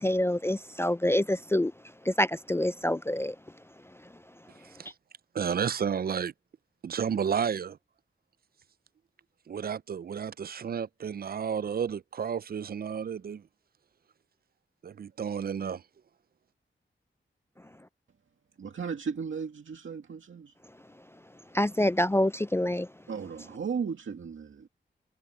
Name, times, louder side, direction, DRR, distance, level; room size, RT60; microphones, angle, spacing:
voice 1, 0.0-1.7 2.1-3.3 21.5-22.9, left 1 dB, 10° left, 0.4 m, -26 dB
voice 2, 5.3-6.3 6.8-7.8 9.5-13.4 14.8-15.8, right 7 dB, 50° right, 0.4 m, -31 dB
voice 3, 18.6-20.6 23.1-24.7, right 6 dB, 75° right, 2.1 m, -35 dB
cardioid pair, 55°, 20 cm